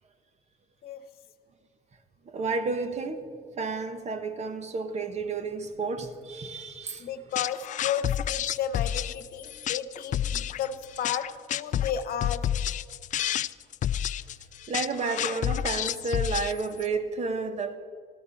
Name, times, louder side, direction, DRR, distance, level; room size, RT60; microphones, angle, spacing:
voice 1, 2.3-3.3 3.6-7.1 14.7-17.7, right 4 dB, 40° right, 1.5 m, -31 dB
voice 2, 7.0-12.4, left 9 dB, 65° left, 1.2 m, -33 dB
sound 1, 7.4-16.9, left 11 dB, 50° left, 0.4 m, -30 dB
19.0 x 16.0 x 4.3 m
cardioid pair, 110°, 17 cm